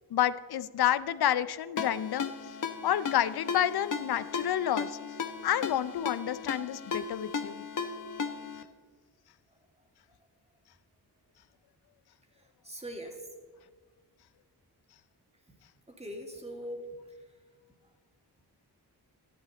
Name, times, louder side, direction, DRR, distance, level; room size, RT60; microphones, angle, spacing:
voice 1, 0.1-2.3 2.8-5.0 5.4-7.6, left 11 dB, 70° left, 15 dB, 0.6 m, -29 dB
Ringtone, 1.8-8.6, left 5 dB, 50° left, 1.0 m, -36 dB
voice 2, 12.4-13.3 15.9-16.9, equal, 15° right, 1 dB, 2.4 m, -41 dB
14.0 x 10.5 x 4.0 m, 1.5 s
cardioid pair, 70°, 40 cm